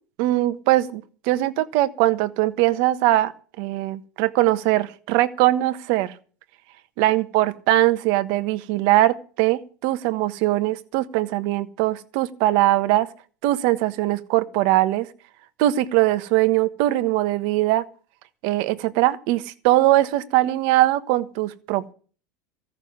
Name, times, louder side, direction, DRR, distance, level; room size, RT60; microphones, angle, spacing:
voice 1, 0.2-3.3 3.6-6.1 7.0-13.1 13.4-15.1 15.6-17.8 18.4-21.9, right 16 dB, 65° right, 12 dB, 1.3 m, -21 dB
14.5 x 6.7 x 9.5 m, 0.41 s
hypercardioid pair, 100°, 9 cm